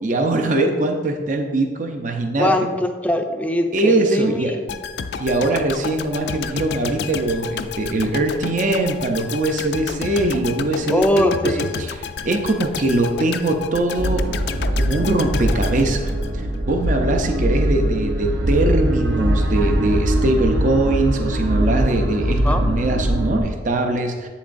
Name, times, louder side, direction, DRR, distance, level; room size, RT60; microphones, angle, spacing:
voice 1, 0.0-2.5 3.7-4.6 5.2-12.0 12.2-14.3 14.8-24.3, right 2 dB, 45° right, 4 dB, 0.6 m, -22 dB
voice 2, 2.4-4.8 10.9-11.7 22.4-22.6, left 1 dB, 10° left, 5 dB, 0.4 m, -21 dB
sound 1, 4.7-16.7 17.0-17.2, left 5 dB, 65° left, 0.4 m, -31 dB
sound 2, 14.0-23.4, right 1 dB, 90° right, 0.8 m, -21 dB
8.1 x 7.1 x 2.5 m, 1.4 s
head